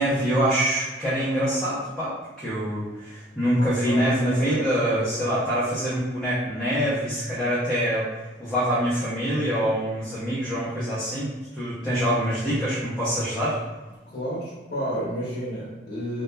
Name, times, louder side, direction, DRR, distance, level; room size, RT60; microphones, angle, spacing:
voice 1, 0.0-8.1 8.4-13.6, equal, 5° left, -11 dB, 0.6 m, -25 dB
voice 2, 3.4-5.4 14.1-16.2, equal, 65° left, -7 dB, 0.7 m, -32 dB
2.7 x 2.2 x 2.2 m, 1.2 s
head